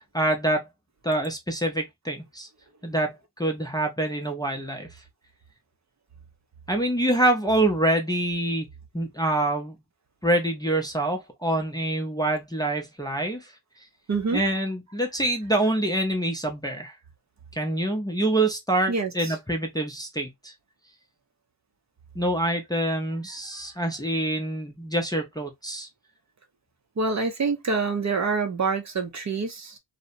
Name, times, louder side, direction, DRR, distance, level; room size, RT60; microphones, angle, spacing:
voice 1, 0.1-0.7 1.0-2.5 2.8-4.9 6.7-8.7 8.9-9.8 10.2-13.4 14.3-16.9 17.5-20.5 22.2-25.9, right 1 dB, 10° left, 0.5 m, -26 dB
voice 2, 14.1-14.4 18.9-19.4 27.0-29.8, right 4 dB, 40° right, 0.6 m, -26 dB
2.7 x 2.1 x 2.5 m
wide cardioid pair, 80°, 43 cm